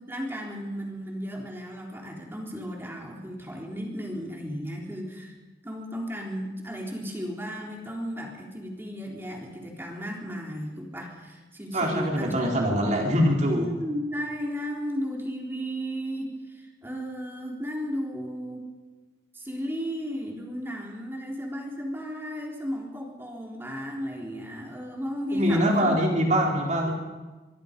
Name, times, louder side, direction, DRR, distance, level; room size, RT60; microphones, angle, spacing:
voice 1, 0.0-5.3 5.6-12.4 12.7-18.6 19.3-26.0, equal, 15° right, 0 dB, 3.7 m, -34 dB
voice 2, 11.7-13.7 25.3-26.9, equal, 40° right, 0 dB, 4.0 m, -23 dB
24.5 x 23.5 x 5.3 m, 1.2 s
head